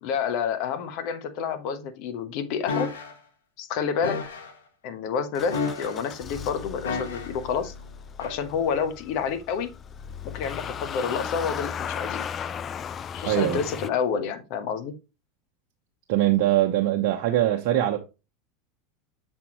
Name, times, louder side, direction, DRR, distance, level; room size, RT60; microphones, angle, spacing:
voice 1, 0.0-2.9 3.6-4.2 4.8-7.7 8.2-9.7 10.2-12.2 13.1-14.9, left 6 dB, 60° left, 1.0 m, -29 dB
sound 1, 2.7-3.1 4.0-4.5 5.5-6.1 6.8-7.4 8.2-8.4, left 5 dB, 85° left, 1.2 m, -31 dB
Motor vehicle (road) / Engine starting, 5.3-13.9, left 8 dB, 35° left, 0.3 m, -36 dB
voice 2, 13.3-13.6 16.1-18.0, right 13 dB, 65° right, 0.8 m, -22 dB
7.2 x 4.4 x 3.0 m
hypercardioid pair, 95°, 0 cm